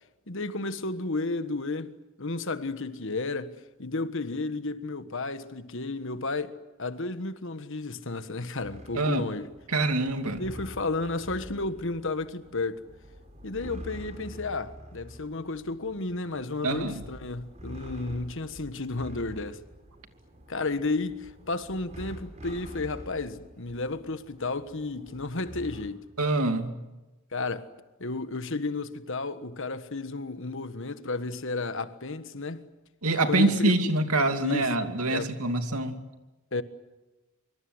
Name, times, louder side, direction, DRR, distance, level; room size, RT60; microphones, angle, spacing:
voice 1, 0.3-3.5 3.8-9.5 10.4-12.8 13.4-19.6 20.5-26.0 27.3-27.7 28.0-32.6 33.3-33.9 34.4-34.7 35.1-35.3 36.5-36.6, left 3 dB, 60° left, 1.5 m, -32 dB
sound 1, 8.6-25.9, equal, 30° right, 4.8 m, -46 dB
voice 2, 8.9-9.3 9.7-10.5 16.6-17.0 26.2-26.8 33.0-36.0, right 2 dB, 85° right, 2.7 m, -25 dB
25.5 x 25.0 x 8.0 m
head